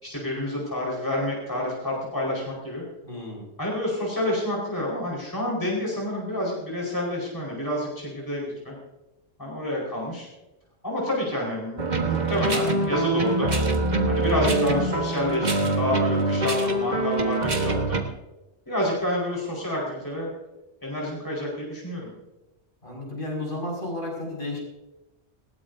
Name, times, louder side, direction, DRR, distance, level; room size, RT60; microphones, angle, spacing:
voice 1, 0.0-2.8 3.6-8.7 9.4-10.3 10.8-13.5 14.1-18.0 18.7-20.3 20.8-22.1, left 1 dB, 20° left, -3 dB, 4.8 m, -28 dB
voice 2, 3.0-3.4 11.3-11.5 22.8-24.6, left 1 dB, 50° left, -2 dB, 6.4 m, -33 dB
sound 1, 11.8-18.0, right 2 dB, 40° right, 1.5 m, -24 dB
20.0 x 18.5 x 2.7 m, 1.0 s
omnidirectional pair, 1.2 m